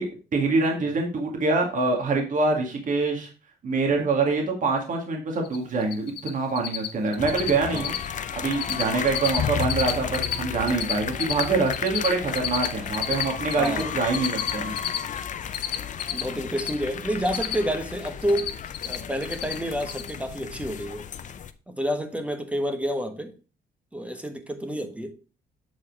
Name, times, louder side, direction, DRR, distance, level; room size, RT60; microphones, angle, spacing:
voice 1, 0.0-3.3 3.6-7.9 8.3-15.0, right 3 dB, 50° right, 2.0 m, -25 dB
Cricket, 5.4-5.6 5.8-6.3 6.6-6.9 7.1-7.5 7.8-8.1 8.3-8.8 9.1-10.4 10.6-13.8 14.1-16.7 17.0-17.8 18.1-19.0 19.2-19.5 19.8-20.1, left 11 dB, 75° left, 0.9 m, -29 dB
sound 1, 7.2-21.5, left 8 dB, 45° left, 0.6 m, -33 dB
voice 2, 13.6-13.9 16.1-18.5 18.9-21.1 21.7-23.3 23.9-25.1, equal, 5° right, 1.2 m, -29 dB
8.0 x 4.2 x 4.7 m
cardioid pair, 110°, 17 cm